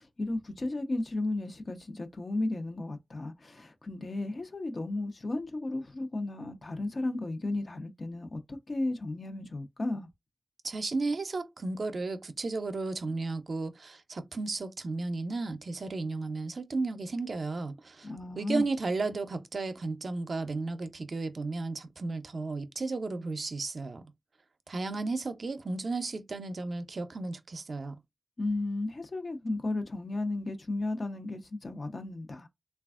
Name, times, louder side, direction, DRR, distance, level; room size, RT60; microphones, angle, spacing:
voice 1, 0.0-10.1 18.0-18.6 28.4-32.5, left 2 dB, 60° left, 0.6 m, -34 dB
voice 2, 10.6-18.1 18.4-24.0 24.7-27.9, right 3 dB, 75° right, 0.4 m, -34 dB
3.2 x 2.3 x 2.3 m
cardioid pair, 55°, 0 cm